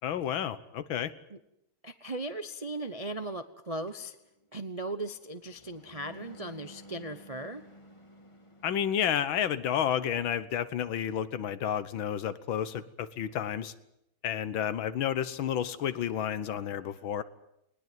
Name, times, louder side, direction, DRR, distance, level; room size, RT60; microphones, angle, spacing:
voice 1, 0.0-1.1 8.6-13.7 14.2-17.2, left 9 dB, 75° left, 14 dB, 1.8 m, -31 dB
voice 2, 1.8-4.2 4.5-7.6, right 2 dB, 35° right, 9 dB, 0.5 m, -38 dB
sound 1, 3.9-9.5, equal, 15° left, 2.0 m, -54 dB
20.5 x 20.5 x 9.3 m, 0.80 s
omnidirectional pair, 2.2 m